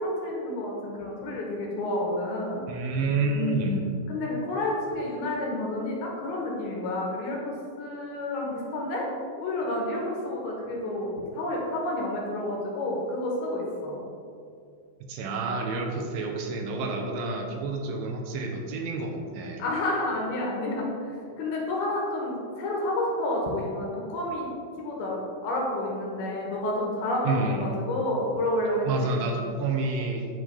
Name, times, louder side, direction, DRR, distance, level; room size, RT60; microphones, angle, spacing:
voice 1, 0.0-2.6 3.3-9.1 9.4-14.0 19.6-24.5 24.8-29.6, left 1 dB, 85° left, -2 dB, 3.0 m, -30 dB
voice 2, 2.7-3.8 15.1-19.6 27.3-27.8 28.9-30.3, right 3 dB, 75° right, 2 dB, 2.2 m, -29 dB
9.1 x 4.9 x 3.4 m, 2.4 s
omnidirectional pair, 4.4 m